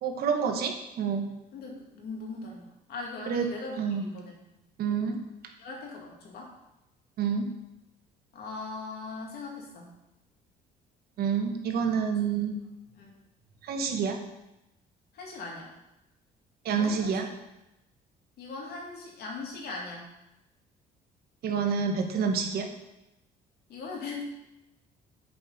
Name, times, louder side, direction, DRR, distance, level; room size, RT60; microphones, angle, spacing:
voice 1, 0.0-1.3 3.3-3.5 3.8-4.0 4.8-5.2 7.2-7.5 11.2-12.6 13.6-14.2 16.6-17.3 21.4-22.7, right 6 dB, 65° right, 4 dB, 1.2 m, -28 dB
voice 2, 1.5-4.4 5.6-6.5 8.3-9.9 13.0-13.2 15.1-15.7 16.7-17.2 18.4-20.1 23.7-24.2, left 3 dB, 65° left, -1 dB, 2.3 m, -40 dB
7.9 x 5.0 x 5.1 m, 0.94 s
cardioid pair, 110°, 17 cm